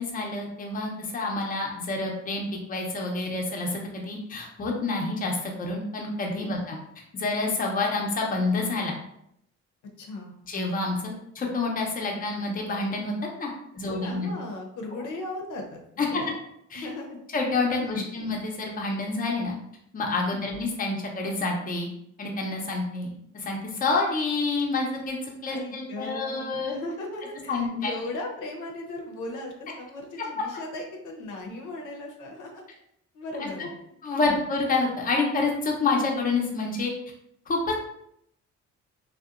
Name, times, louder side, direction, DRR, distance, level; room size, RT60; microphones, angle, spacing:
voice 1, 0.0-6.8 7.1-8.9 10.5-14.3 16.0-16.2 16.7-16.9 17.3-19.5 19.9-21.9 22.2-23.1 23.3-26.7 27.5-27.9 33.4-33.7 34.0-36.9 37.5-37.9, left 3 dB, 30° left, 0 dB, 0.6 m, -28 dB
voice 2, 10.0-10.3 13.9-16.4 16.7-17.2 17.8-18.2 20.2-20.5 25.5-32.6 33.1-33.8 34.1-34.5, left 2 dB, 90° left, 1 dB, 0.6 m, -37 dB
2.7 x 2.1 x 2.4 m, 0.75 s
cardioid pair, 90°, 30 cm